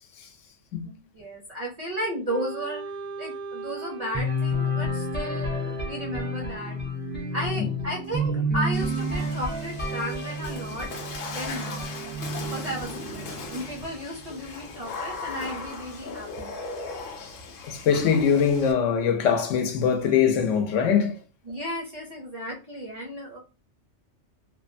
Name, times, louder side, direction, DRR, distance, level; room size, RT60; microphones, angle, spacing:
voice 1, 0.8-2.8 3.2-6.8 7.3-10.9 11.3-11.9 12.4-16.5 21.5-23.4, equal, 50° right, 0.5 m, -34 dB
Wind instrument woodwind instrument, 2.3-6.9, right 4 dB, 90° right, 1.0 m, -38 dB
sound 1, 4.1-14.0, equal, 15° left, 0.4 m, -30 dB
Water / Splash splatter, 8.7-18.7, left 4 dB, 60° left, 0.6 m, -38 dB
voice 2, 17.6-21.2, left 7 dB, 85° left, 0.9 m, -22 dB
2.9 x 2.1 x 2.5 m
omnidirectional pair, 1.2 m